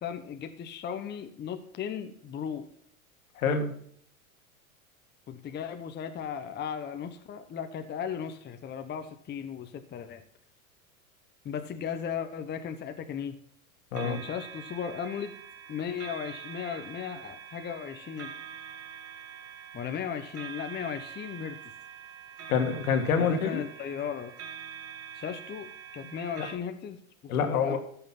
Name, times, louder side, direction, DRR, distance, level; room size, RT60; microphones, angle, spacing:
voice 1, 0.0-2.7 5.3-10.2 11.4-13.4 14.0-15.3 15.7-18.3 19.7-21.6 23.2-24.3 25.1-27.0 27.2-27.8, left 8 dB, 25° left, 7 dB, 1.0 m, -36 dB
voice 2, 3.4-3.7 13.9-14.2 22.5-23.6 26.0-26.1 27.3-27.8, left 6 dB, 75° left, 6 dB, 1.9 m, -26 dB
sound 1, 13.9-26.5, right 8 dB, 35° right, 1.8 m, -45 dB
14.0 x 5.9 x 5.8 m, 0.66 s
hypercardioid pair, 105°, 42 cm